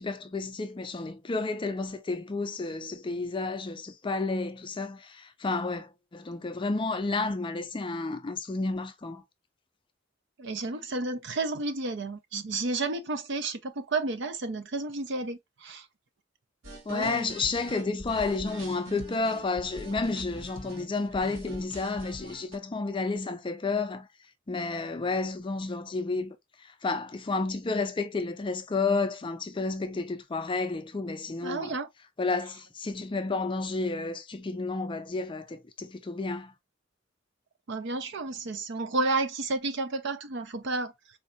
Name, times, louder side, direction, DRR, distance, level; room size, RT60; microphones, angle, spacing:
voice 1, 0.0-9.2 16.9-24.1 24.5-26.4 26.6-31.8 32.2-36.5, left 3 dB, 25° left, 0.4 m, -31 dB
voice 2, 10.4-15.8 16.9-17.3 31.4-31.9 37.7-40.9, right 3 dB, 60° right, 0.6 m, -31 dB
sound 1, 16.6-22.6, equal, 85° right, 1.3 m, -44 dB
4.2 x 2.7 x 2.4 m
head